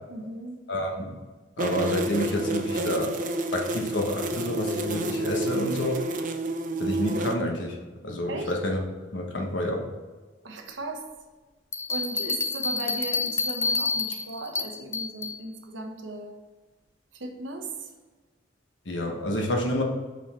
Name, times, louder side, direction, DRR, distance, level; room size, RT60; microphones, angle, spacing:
voice 1, 0.1-0.6 8.3-8.5 10.4-11.1 11.9-16.3 17.1-17.9, right 2 dB, 75° right, 4 dB, 1.0 m, -36 dB
voice 2, 0.7-1.1 1.6-3.1 3.5-6.0 6.8-7.8 8.0-8.8 9.1-9.8 18.9-19.8, left 1 dB, 70° left, 1 dB, 1.2 m, -28 dB
sound 1, 1.6-7.3, right 1 dB, 45° right, 0.6 m, -29 dB
Bell, 11.7-15.4, left 4 dB, 15° left, 0.5 m, -28 dB
5.6 x 5.5 x 4.4 m, 1.3 s
head